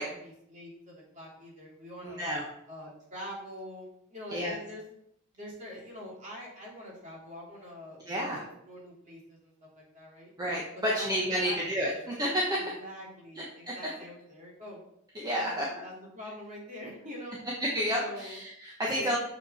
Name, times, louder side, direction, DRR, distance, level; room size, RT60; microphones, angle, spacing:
voice 1, 0.0-2.2 2.7-4.8 5.3-10.3 10.7-11.7 11.9-12.0 12.8-14.8 15.4-17.4 18.0-18.4 19.0-19.2, equal, 35° right, -4 dB, 2.9 m, -45 dB
voice 2, 2.0-2.4 4.3-4.5 8.1-8.4 10.4-12.5 13.4-13.7 15.1-15.7 17.7-19.2, equal, 20° right, -4 dB, 1.2 m, -30 dB
6.9 x 6.6 x 4.2 m, 0.76 s
head